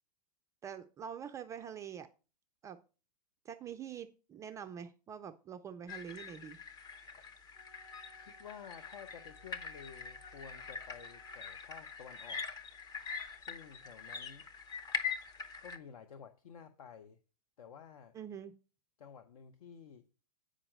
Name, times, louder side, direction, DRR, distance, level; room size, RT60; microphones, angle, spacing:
voice 1, 0.6-2.1 2.6-2.8 3.4-6.6 18.1-18.5, right 8 dB, 15° right, 0.3 m, -45 dB
sound 1, 5.9-15.8, left 6 dB, 20° left, 0.7 m, -43 dB
Wind instrument woodwind instrument, 7.5-11.4, right 2 dB, 90° left, 1.7 m, -63 dB
voice 2, 8.2-12.4 13.4-14.4 15.6-17.2 17.6-18.1 19.0-20.1, left 7 dB, 60° left, 0.8 m, -52 dB
8.6 x 5.1 x 5.3 m
figure-of-eight pair, 105°, 21 cm